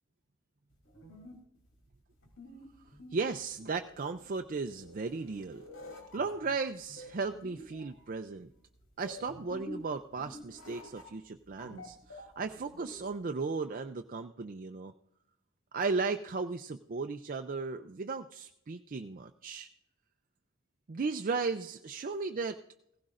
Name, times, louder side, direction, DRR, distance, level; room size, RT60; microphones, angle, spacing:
sound 1, 0.7-13.2, equal, 85° left, 3.1 m, -49 dB
voice 1, 3.1-5.6 6.1-8.5 9.0-14.9 15.7-19.7 20.9-22.6, right 4 dB, 40° right, 6 dB, 0.4 m, -35 dB
17.0 x 16.0 x 2.5 m, 0.77 s
head